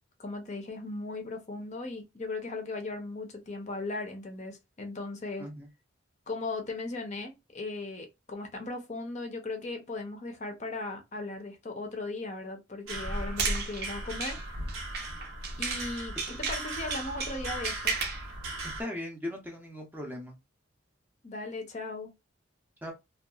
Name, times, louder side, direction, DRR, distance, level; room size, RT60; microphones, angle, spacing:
voice 1, 0.2-5.5 6.3-14.4 15.6-18.0 21.2-22.1, left 2 dB, 35° left, 0.5 m, -37 dB
sound 1, 12.9-18.8, right 1 dB, 85° right, 0.7 m, -37 dB
sound 2, 13.1-15.9 16.2-18.3, right 5 dB, 50° right, 0.6 m, -34 dB
voice 2, 18.8-20.3 22.8-22.9, left 1 dB, 10° right, 0.5 m, -38 dB
2.7 x 2.3 x 2.3 m
head